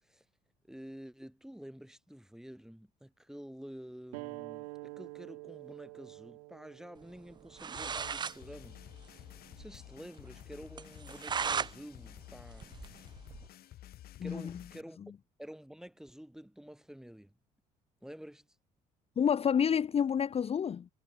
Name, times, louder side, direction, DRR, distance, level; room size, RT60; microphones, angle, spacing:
voice 1, 0.7-9.3 9.6-13.2 13.5-13.6 14.2-15.0 15.4-17.3 18.0-18.4, equal, ahead, 6.8 m, -49 dB
sound 1, 4.1-9.3, right 31 dB, 65° right, 2.8 m, -48 dB
sound 2, 7.3-7.4 7.6-8.4 8.7-8.8 9.1-9.2 9.6-9.7 10.1-10.2 10.8-11.7 12.1-13.5, right 6 dB, 20° right, 0.5 m, -36 dB
sound 3, 7.8-14.8, left 13 dB, 50° left, 1.2 m, -52 dB
voice 2, 14.2-14.5 19.2-20.9, left 7 dB, 30° left, 0.8 m, -29 dB
figure-of-eight pair, 55°, 20 cm